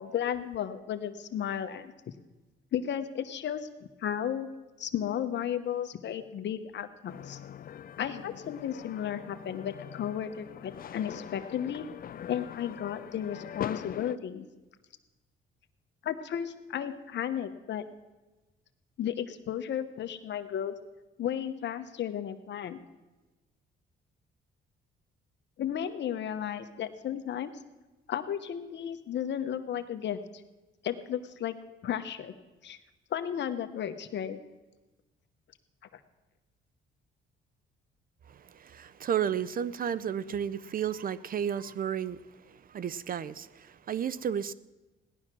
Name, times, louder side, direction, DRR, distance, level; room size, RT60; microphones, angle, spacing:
voice 1, 0.0-1.9 2.7-3.7 4.0-4.5 4.8-7.4 8.0-11.9 12.3-14.5 16.0-17.8 19.0-20.7 21.2-22.8 25.6-27.5 28.1-30.2 30.8-31.6 31.8-32.3 32.6-32.8 33.1-34.4, left 9 dB, 65° left, 9 dB, 1.1 m, -34 dB
sound 1, 7.1-14.2, left 9 dB, 45° left, 0.5 m, -42 dB
voice 2, 38.3-44.5, right 8 dB, 45° right, 18 dB, 0.5 m, -33 dB
17.0 x 11.0 x 6.1 m, 1.1 s
cardioid pair, 90°, 20 cm